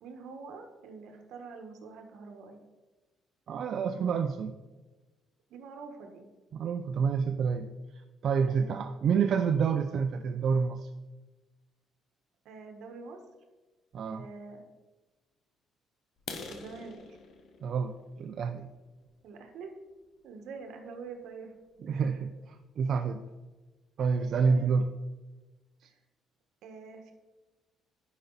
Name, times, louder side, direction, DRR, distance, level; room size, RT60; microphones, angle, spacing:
voice 1, 0.0-2.6 5.5-6.2 8.4-8.9 12.4-13.2 14.0-14.6 16.3-17.0 19.2-19.7 20.2-21.5 21.9-22.1 24.4-24.8 25.8-25.9 26.6-27.1, right 4 dB, 70° right, 4 dB, 1.3 m, -46 dB
voice 2, 3.5-4.5 6.5-7.7 8.2-10.9 13.9-14.3 17.6-18.7 21.8-23.2 24.0-24.9 25.8-25.9, right 6 dB, 50° right, 6 dB, 0.5 m, -28 dB
sound 1, 16.2-19.9 20.5-20.6 21.1-21.2 21.6-21.8 22.1-22.2 22.7-22.8 23.0-23.5, left 4 dB, 55° left, 1.2 m, -47 dB
11.0 x 5.3 x 4.0 m, 1.2 s
cardioid pair, 120°, 0 cm